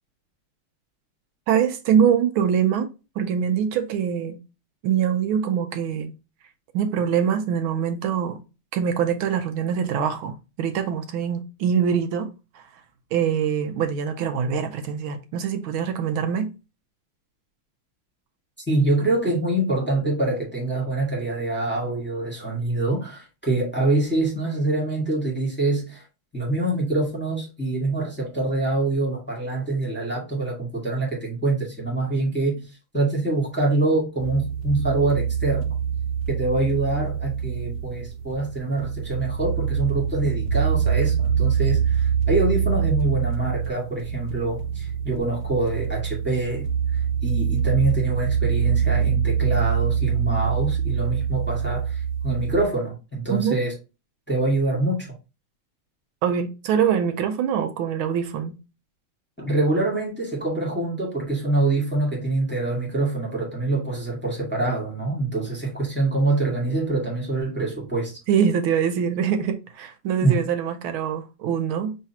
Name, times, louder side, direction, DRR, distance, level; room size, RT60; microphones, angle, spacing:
voice 1, 1.5-4.4 4.8-6.1 6.7-8.4 8.7-12.3 12.5-12.6 13.1-16.5 53.3-53.6 56.2-58.6 68.3-72.0, right 8 dB, 80° right, 1.5 m, -24 dB
voice 2, 18.7-26.0 26.3-32.6 32.9-35.7 36.3-53.7 54.3-55.1 59.4-68.2 70.2-70.4, right 2 dB, 5° left, 1.4 m, -25 dB
sound 1, 34.2-52.6, right 7 dB, 60° right, 1.1 m, -25 dB
5.5 x 3.2 x 2.8 m
omnidirectional pair, 2.3 m